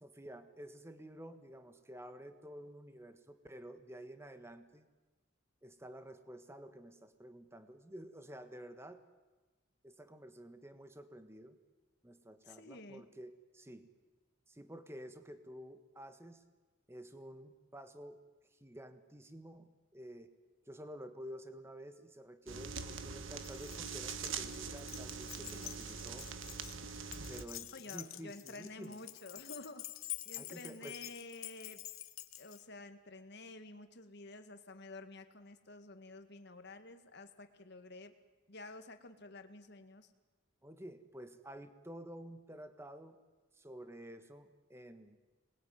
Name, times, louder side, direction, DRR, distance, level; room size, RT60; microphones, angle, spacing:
voice 1, 0.0-4.9 5.6-9.0 9.8-11.6 12.0-13.9 14.5-16.4 16.9-18.2 18.5-20.3 20.7-26.3 27.3-29.0 30.4-31.0 40.6-43.2 43.5-45.2, equal, 10° right, 9 dB, 1.4 m, -51 dB
voice 2, 12.4-13.1 25.3-25.8 27.7-29.9 30.3-31.8 32.4-38.1 38.5-40.1, left 2 dB, 55° left, 8 dB, 1.8 m, -51 dB
sound 1, 22.5-27.5, right 5 dB, 65° right, 1.5 m, -43 dB
Keys jangling, 23.4-32.6, left 15 dB, 80° left, 1.1 m, -48 dB
26.5 x 20.5 x 9.4 m, 1.2 s
head